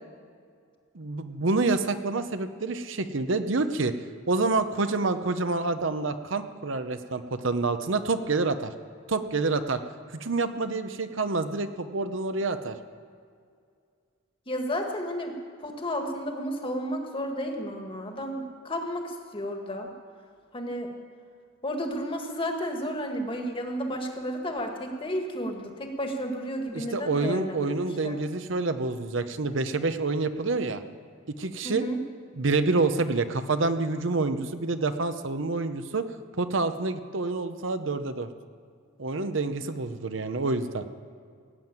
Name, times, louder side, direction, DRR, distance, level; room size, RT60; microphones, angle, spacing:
voice 1, 0.9-3.9 4.3-8.7 9.1-9.8 10.1-12.8 26.7-30.8 31.4-31.8 32.4-36.1 36.4-38.3 39.0-40.8, right 3 dB, 70° right, 10 dB, 0.8 m, -27 dB
voice 2, 14.5-19.9 20.5-20.9 21.6-28.2 31.6-32.0, equal, 25° left, 3 dB, 1.7 m, -32 dB
17.5 x 7.9 x 9.0 m, 2.2 s
head